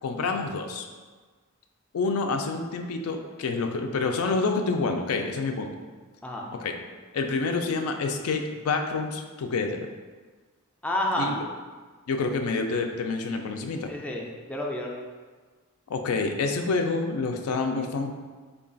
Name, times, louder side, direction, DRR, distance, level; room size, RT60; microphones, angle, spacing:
voice 1, 0.0-0.9 1.9-5.7 6.6-6.8 7.1-9.9 11.2-11.5 12.1-13.9 15.9-18.1, left 4 dB, 80° left, 4 dB, 0.4 m, -28 dB
voice 2, 10.8-11.4 13.9-15.1, left 1 dB, 5° left, -1 dB, 0.3 m, -30 dB
3.7 x 2.3 x 3.8 m, 1.4 s
head